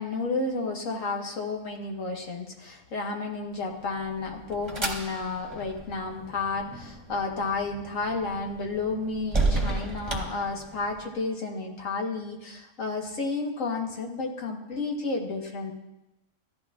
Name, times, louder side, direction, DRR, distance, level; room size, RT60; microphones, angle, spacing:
voice 1, 0.0-15.7, left 3 dB, 85° left, 1 dB, 1.7 m, -31 dB
sound 1, 3.7-11.1, right 2 dB, 25° right, 1.1 m, -33 dB
13.5 x 10.5 x 2.4 m, 0.93 s
omnidirectional pair, 1.3 m